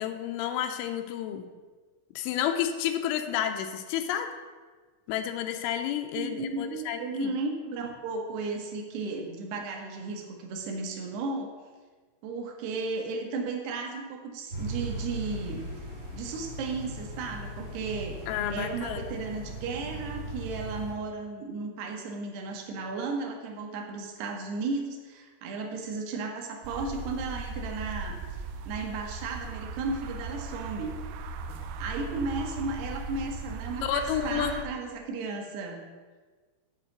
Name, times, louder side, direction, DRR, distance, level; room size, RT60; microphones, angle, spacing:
voice 1, 0.0-1.5 2.2-4.3 5.1-7.3 18.3-19.0 33.8-34.5, left 10 dB, 85° left, 6 dB, 3.1 m, -30 dB
voice 2, 6.1-11.5 12.2-15.6 16.1-18.2 18.5-28.2 28.7-31.0 31.8-35.8, right 3 dB, 70° right, 2 dB, 2.9 m, -34 dB
sound 1, 14.5-20.9, right 1 dB, 55° right, 1.0 m, -38 dB
sound 2, 26.6-34.7, right 3 dB, 90° right, 3.3 m, -38 dB
10.0 x 4.6 x 7.8 m, 1.4 s
omnidirectional pair, 5.7 m